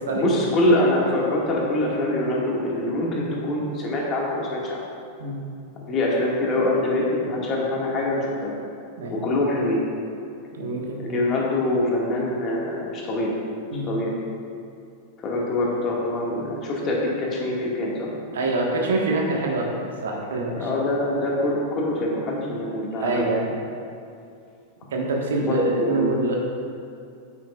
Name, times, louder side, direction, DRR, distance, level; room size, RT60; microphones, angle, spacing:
voice 1, 0.1-4.9 5.9-8.5 9.1-9.8 11.0-13.4 13.8-14.2 15.2-18.1 20.6-23.3 25.4-26.1, left 1 dB, 30° left, -3 dB, 1.8 m, -24 dB
voice 2, 10.5-11.0 13.7-13.8 18.3-19.7 20.0-20.7 23.0-23.5 24.9-26.4, right 2 dB, 65° right, -1 dB, 1.3 m, -25 dB
9.3 x 8.7 x 2.4 m, 2.4 s
figure-of-eight pair, 90°, 0 cm